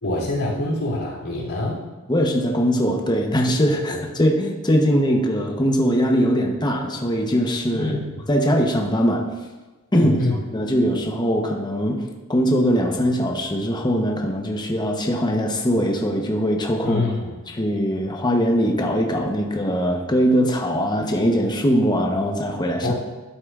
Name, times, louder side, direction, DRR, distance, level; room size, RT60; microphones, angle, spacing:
voice 1, 0.0-1.8 3.9-4.0 7.7-8.2 9.9-10.4 16.8-17.3 22.8-22.9, left 2 dB, 85° left, -4 dB, 3.2 m, -25 dB
voice 2, 2.1-7.9 8.3-9.3 9.9-10.1 10.5-12.0 12.3-17.0 17.5-22.9, equal, 20° left, 2 dB, 0.9 m, -21 dB
12.5 x 8.5 x 2.5 m, 1.2 s
head